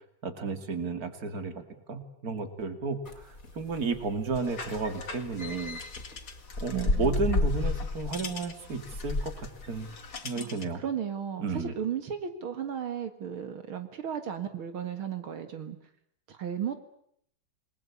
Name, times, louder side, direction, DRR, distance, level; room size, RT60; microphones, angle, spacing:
voice 1, 0.2-1.6 1.9-5.8 6.6-9.9 10.2-10.8 11.4-11.7, right 4 dB, 45° right, 9 dB, 2.9 m, -33 dB
sound 1, 3.1-10.2, left 2 dB, 40° left, 3.9 m, -33 dB
sound 2, 4.3-10.8, left 4 dB, 65° left, 2.9 m, -44 dB
voice 2, 6.7-7.1 10.4-15.8 16.3-16.8, right 8 dB, 80° right, 9 dB, 2.7 m, -35 dB
28.5 x 21.0 x 8.5 m, 0.69 s
omnidirectional pair, 2.3 m